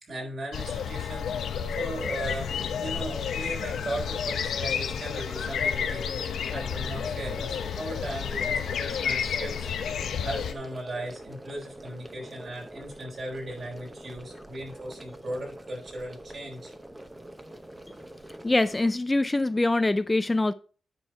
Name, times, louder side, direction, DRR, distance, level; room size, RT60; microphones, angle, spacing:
voice 1, 0.0-16.7, right 1 dB, 50° right, 3.8 m, -37 dB
sound 1, 0.5-10.5, left 7 dB, 85° left, 0.8 m, -31 dB
sound 2, 2.5-18.9, right 1 dB, 15° right, 0.9 m, -45 dB
voice 2, 18.4-20.5, left 2 dB, 15° left, 0.4 m, -24 dB
9.8 x 4.5 x 4.6 m
cardioid pair, 105°, 0 cm